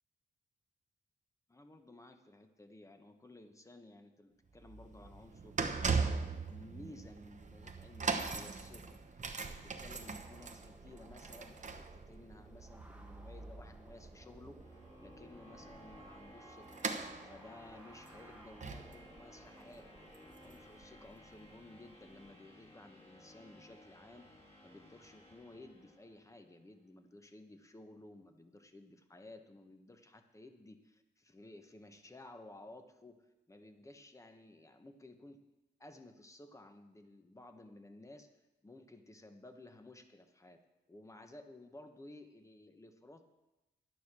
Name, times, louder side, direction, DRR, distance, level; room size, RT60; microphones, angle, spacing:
voice 1, 1.5-5.5 6.0-9.2 9.5-14.6 15.0-16.8 17.2-19.9 20.4-24.2 24.6-33.2 33.5-35.4 35.8-38.3 38.6-40.6 40.9-43.2, left 2 dB, 15° left, 7 dB, 1.2 m, -55 dB
sound 1, 4.5-21.5 22.1-22.2, right 4 dB, 40° right, 1.1 m, -41 dB
sound 2, 10.0-20.7, right 1 dB, 5° right, 1.4 m, -61 dB
sound 3, 13.5-26.5, equal, 35° left, 5.2 m, -58 dB
11.5 x 9.4 x 6.1 m, 1.0 s
cardioid pair, 105°, 19 cm